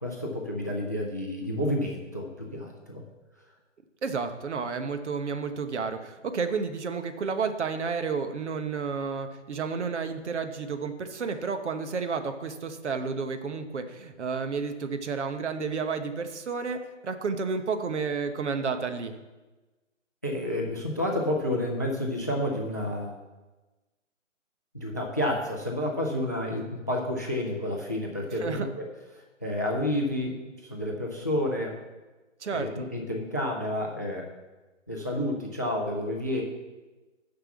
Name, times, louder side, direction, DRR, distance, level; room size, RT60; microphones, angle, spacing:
voice 1, 0.0-3.0 20.2-23.2 24.7-28.9 29.1-31.8 32.5-34.3 34.9-36.4, left 1 dB, 15° left, 1 dB, 0.4 m, -30 dB
voice 2, 4.0-19.1 28.4-28.7 32.4-32.9, right 5 dB, 65° right, 8 dB, 1.1 m, -31 dB
6.7 x 6.0 x 7.2 m, 1.2 s
figure-of-eight pair, 145°, 38 cm